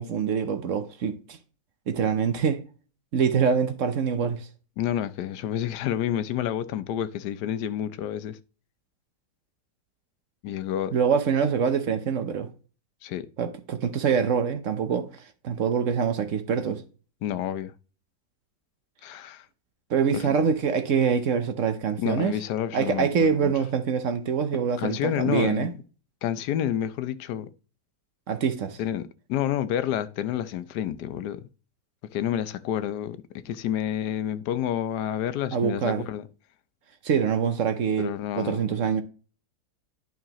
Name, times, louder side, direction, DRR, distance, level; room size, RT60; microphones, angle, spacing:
voice 1, 0.0-1.4 1.9-2.6 3.1-4.5 10.9-12.5 13.4-15.1 15.4-16.8 19.9-22.3 22.7-25.7 28.3-28.8 35.5-36.0 37.0-39.0, right 6 dB, 60° right, 1.1 m, -25 dB
voice 2, 4.8-8.4 10.4-10.9 13.0-13.3 17.2-17.7 19.0-19.4 20.1-20.3 22.0-23.5 24.8-25.7 26.2-27.5 28.8-31.5 32.1-36.3 38.0-38.7, left 10 dB, 90° left, 1.2 m, -29 dB
11.0 x 5.9 x 3.0 m
omnidirectional pair, 1.7 m